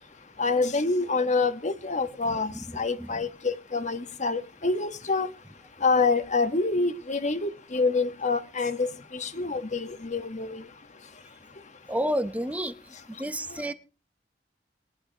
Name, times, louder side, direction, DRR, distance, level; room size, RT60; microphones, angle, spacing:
voice 1, 0.4-5.3 5.8-10.6 13.5-13.6, left 3 dB, 45° left, 9 dB, 1.4 m, -27 dB
voice 2, 11.9-12.7 13.1-13.7, equal, 10° right, 10 dB, 0.9 m, -29 dB
21.5 x 11.5 x 3.0 m, 0.31 s
head